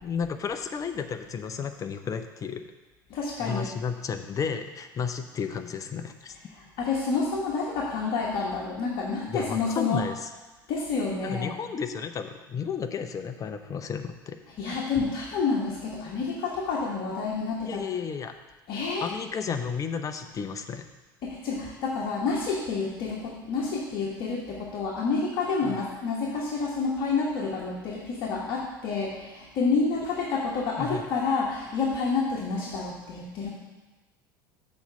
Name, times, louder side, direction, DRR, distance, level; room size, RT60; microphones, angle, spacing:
voice 1, 0.0-2.6 3.4-6.3 9.3-10.3 11.2-14.4 17.7-18.4 19.0-20.9 25.6-25.8 30.8-31.0, left 6 dB, 30° left, 8 dB, 0.7 m, -33 dB
voice 2, 3.1-3.7 6.5-10.0 10.7-11.5 14.6-17.8 18.7-19.1 21.2-33.5, left 4 dB, 50° left, -3 dB, 1.3 m, -29 dB
7.0 x 4.3 x 6.6 m, 1.2 s
figure-of-eight pair, 70°, 12 cm